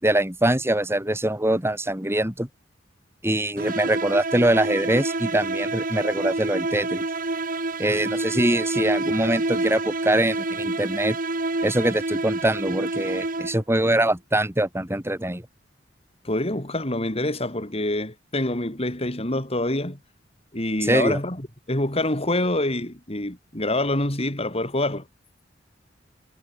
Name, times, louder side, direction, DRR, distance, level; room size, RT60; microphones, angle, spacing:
voice 1, 0.0-2.5 3.2-7.0 7.8-11.2 11.6-15.4 20.8-21.2, right 1 dB, 15° right, 4.2 m, -23 dB
sound 1, 3.6-13.8, right 2 dB, 50° right, 2.6 m, -28 dB
voice 2, 16.2-20.0 20.5-25.0, left 1 dB, 35° left, 4.5 m, -26 dB
head